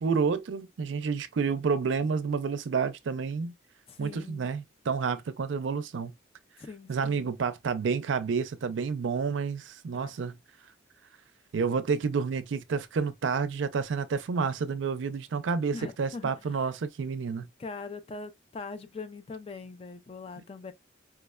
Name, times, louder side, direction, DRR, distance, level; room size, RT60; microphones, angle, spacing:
voice 1, 0.0-3.5 4.0-6.1 6.9-10.4 11.5-17.5, right 5 dB, 80° right, 0.4 m, -29 dB
voice 2, 3.9-4.5 6.6-7.3 9.9-10.2 15.7-16.7 17.6-20.7, left 4 dB, 30° left, 0.3 m, -42 dB
4.7 x 2.1 x 2.2 m
head